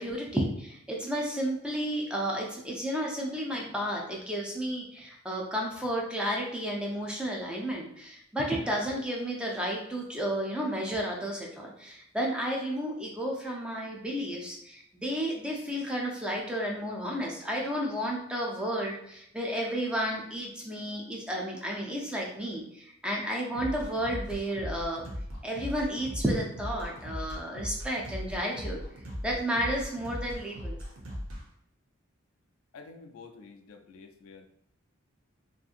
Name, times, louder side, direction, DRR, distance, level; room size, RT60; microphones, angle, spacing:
voice 1, 0.0-25.0 25.4-28.8 29.2-30.8, equal, 5° right, -2 dB, 0.3 m, -32 dB
sound 1, 23.6-31.4, equal, 85° right, 0.7 m, -38 dB
voice 2, 32.7-34.5, left 4 dB, 90° left, 5 dB, 0.3 m, -49 dB
2.7 x 2.5 x 2.4 m, 0.76 s
head